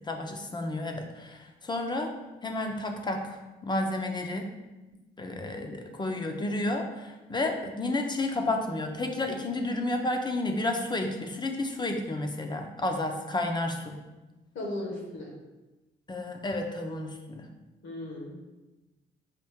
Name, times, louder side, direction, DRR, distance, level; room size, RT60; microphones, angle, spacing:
voice 1, 0.0-2.1 2.4-3.4 3.6-4.5 5.2-14.0 16.1-17.5, left 2 dB, 20° left, 4 dB, 0.6 m, -31 dB
voice 2, 14.5-15.3 17.8-18.5, left 1 dB, 70° left, -1 dB, 1.5 m, -37 dB
5.7 x 2.5 x 3.5 m, 1.1 s
cardioid pair, 90°, 20 cm